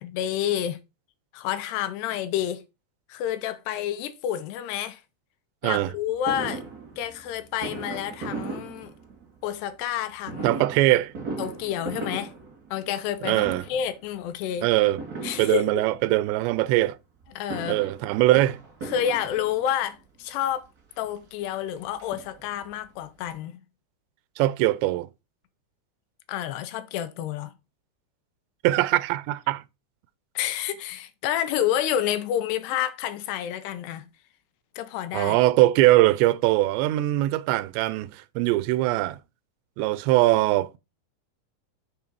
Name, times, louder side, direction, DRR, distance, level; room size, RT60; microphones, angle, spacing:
voice 1, 0.0-0.8 1.3-2.6 3.1-5.0 5.6-6.6 7.0-8.9 9.4-10.7 11.4-12.3 12.7-14.7 15.2-15.8 17.4-17.8 18.9-20.7 21.0-23.6 26.3-27.5 30.4-34.1 34.8-35.4, left 10 dB, 80° left, 2.7 m, -29 dB
voice 2, 5.6-5.9 10.4-11.1 13.2-13.7 14.6-15.0 15.4-17.0 17.7-18.6 24.4-25.1 28.6-29.6 35.1-39.2 39.8-40.8, right 17 dB, 90° right, 2.8 m, -21 dB
Fireworks, 6.3-9.5 10.2-13.2 13.4-14.0 15.0-16.1 17.2-19.9 20.6-20.7 21.0-21.1 21.5-22.7 23.0-23.1 23.3-23.4, right 3 dB, 65° right, 0.9 m, -38 dB
6.8 x 3.7 x 5.9 m
omnidirectional pair, 4.9 m